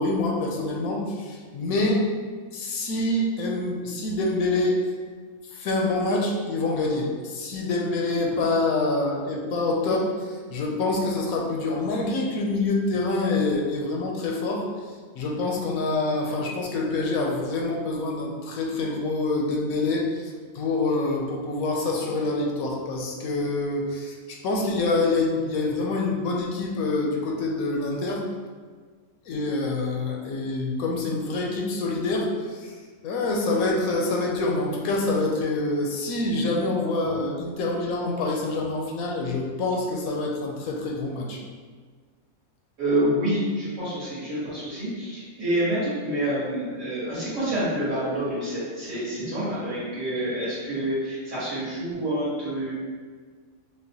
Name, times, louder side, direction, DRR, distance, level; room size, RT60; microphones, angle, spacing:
voice 1, 0.0-2.1 2.5-4.8 5.5-14.7 15.1-28.2 29.3-32.7 33.0-41.4, left 2 dB, 80° left, 0 dB, 1.0 m, -26 dB
voice 2, 42.8-52.8, right 1 dB, 60° right, -11 dB, 1.9 m, -27 dB
5.2 x 2.2 x 2.8 m, 1.5 s
omnidirectional pair, 1.5 m